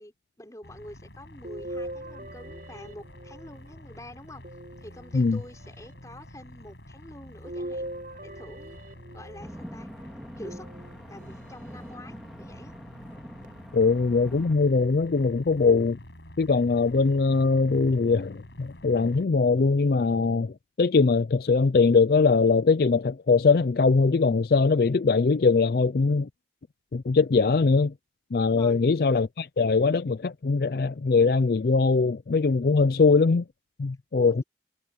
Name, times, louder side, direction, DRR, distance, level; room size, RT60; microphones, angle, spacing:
voice 1, 0.0-4.4 4.8-7.9 8.2-8.8 9.1-9.9 10.4-10.7 11.1-12.7 28.6-28.8 34.1-34.4, left 1 dB, 20° left, 5.0 m, -46 dB
sound 1, 0.6-19.3, left 1 dB, 75° left, 6.6 m, -48 dB
sound 2, 1.4-3.7 4.4-5.4 7.4-9.5 10.4-11.3 11.9-12.0 13.4-13.5, right 1 dB, 50° right, 7.8 m, -40 dB
sound 3, 9.4-14.6, equal, ahead, 3.9 m, -44 dB
voice 2, 13.7-16.0 16.4-26.3 26.9-27.9 28.3-33.4 33.8-34.4, left 4 dB, 55° left, 0.4 m, -22 dB
head